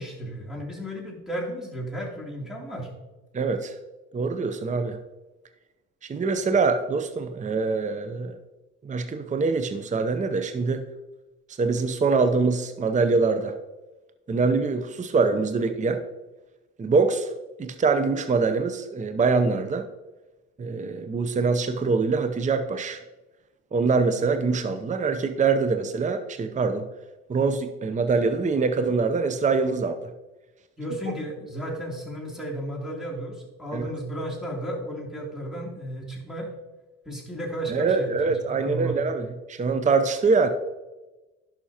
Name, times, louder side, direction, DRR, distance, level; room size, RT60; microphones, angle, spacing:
voice 1, 0.0-2.9 30.8-36.5 37.0-38.9, right 1 dB, ahead, -3 dB, 2.9 m, -33 dB
voice 2, 3.3-3.7 4.1-5.0 6.1-8.4 8.8-10.8 11.6-13.6 14.3-16.0 16.8-17.3 17.6-19.9 20.6-23.0 23.7-26.9 27.3-30.1 33.7-33.9 37.7-40.5, right 4 dB, 25° right, 9 dB, 0.6 m, -24 dB
11.5 x 5.7 x 2.9 m, 1.1 s
supercardioid pair, 60°, 29 cm